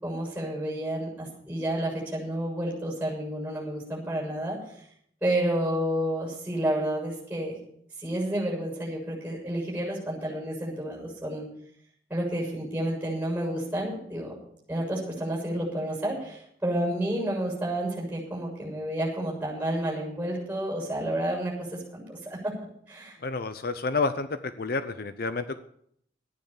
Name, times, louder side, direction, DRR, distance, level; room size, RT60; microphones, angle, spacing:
voice 1, 0.0-4.6 5.2-7.6 8.0-11.5 12.1-14.3 14.7-22.5 22.9-23.2, right 1 dB, 10° right, -2 dB, 7.0 m, -30 dB
voice 2, 23.2-25.6, left 3 dB, 55° left, 11 dB, 0.7 m, -29 dB
14.0 x 9.6 x 7.2 m, 0.68 s
head